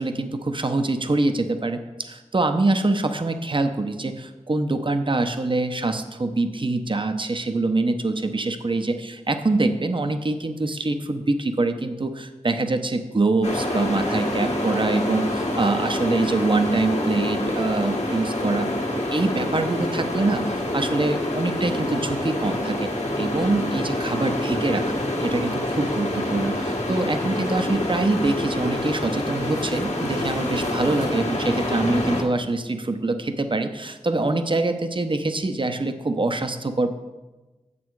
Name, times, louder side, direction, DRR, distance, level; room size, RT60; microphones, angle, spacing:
voice 1, 0.0-18.7 19.1-22.9 23.2-37.0, right 2 dB, 40° right, 7 dB, 0.8 m, -24 dB
sound 1, 13.4-32.2, left 1 dB, 60° left, 1.6 m, -27 dB
8.6 x 7.0 x 4.7 m, 1.1 s
cardioid pair, 45°, 13 cm